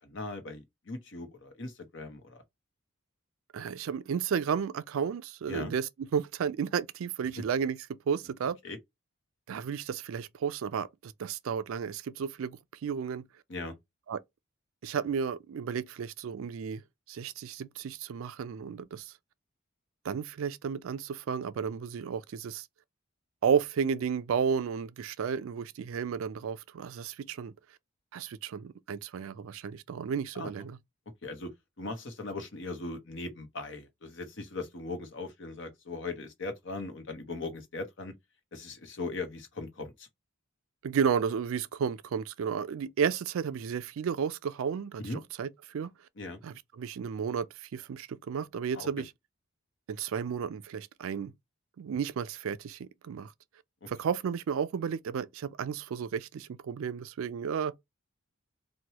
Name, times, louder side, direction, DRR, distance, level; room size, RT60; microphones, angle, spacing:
voice 1, 0.0-2.4 5.5-5.7 7.4-7.5 8.6-8.8 13.5-13.8 30.3-30.5 31.2-38.1 38.5-40.1 45.0-45.2 46.2-46.4 48.7-48.9 53.8-53.9, left 3 dB, 60° left, 0.8 m, -39 dB
voice 2, 3.5-7.8 8.1-8.6 9.5-13.2 14.1-14.2 14.8-16.8 17.1-19.1 20.0-22.7 23.4-27.5 28.1-30.8 40.8-45.0 45.4-45.9 46.4-49.1 49.9-51.3 51.8-53.3 53.9-57.7, right 7 dB, 75° right, 0.3 m, -33 dB
3.0 x 2.2 x 2.8 m
head